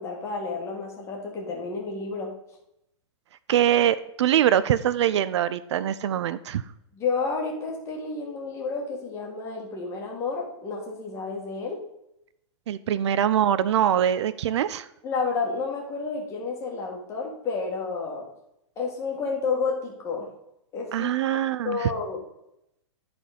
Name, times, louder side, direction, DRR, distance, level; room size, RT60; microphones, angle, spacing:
voice 1, 0.0-2.3 6.9-11.8 15.0-18.3 18.8-20.3 20.7-22.2, left 4 dB, 20° left, -1 dB, 1.9 m, -30 dB
voice 2, 3.5-6.6 12.7-14.9 20.9-21.9, right 10 dB, 70° right, 15 dB, 0.5 m, -23 dB
11.5 x 4.3 x 5.1 m, 0.81 s
hypercardioid pair, 160°, 15 cm